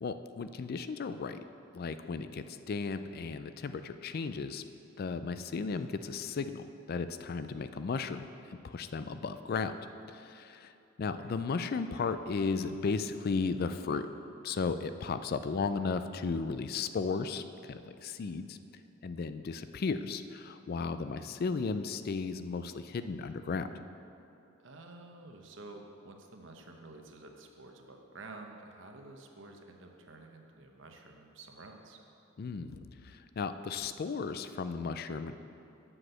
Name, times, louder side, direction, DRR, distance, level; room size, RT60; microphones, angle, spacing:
voice 1, 0.0-1.4 1.7-4.6 5.0-8.3 8.6-9.7 10.1-10.7 11.0-14.1 14.4-18.6 19.0-23.7 32.4-32.8 33.4-35.4, left 4 dB, 50° left, 11 dB, 0.4 m, -35 dB
voice 2, 11.0-11.4 24.6-32.0, right 2 dB, 65° right, 3 dB, 0.9 m, -50 dB
7.8 x 6.1 x 7.7 m, 2.8 s
head